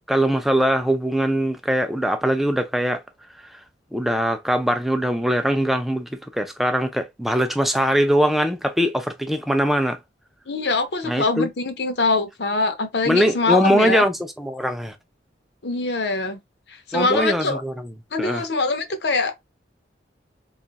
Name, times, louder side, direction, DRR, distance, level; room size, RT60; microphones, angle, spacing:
voice 1, 0.1-3.0 3.9-10.0 11.1-11.5 13.1-15.0 16.9-17.7 18.2-18.4, equal, ahead, 0.4 m, -21 dB
voice 2, 10.5-14.0 15.6-16.4 16.7-17.6 18.1-19.3, left 3 dB, 65° left, 0.7 m, -23 dB
2.5 x 2.4 x 3.9 m
head